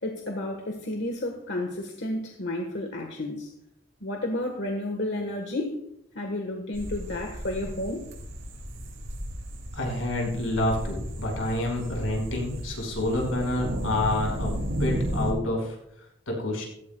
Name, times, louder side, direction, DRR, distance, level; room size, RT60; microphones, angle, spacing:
voice 1, 0.0-3.5 4.0-5.8 6.1-8.1, left 1 dB, 60° left, 3 dB, 1.4 m, -31 dB
sound 1, 6.7-15.3, equal, 75° right, 4.7 m, -34 dB
voice 2, 9.7-14.5 14.8-16.6, left 1 dB, 80° left, 0 dB, 5.4 m, -28 dB
16.0 x 15.5 x 2.3 m, 0.77 s
head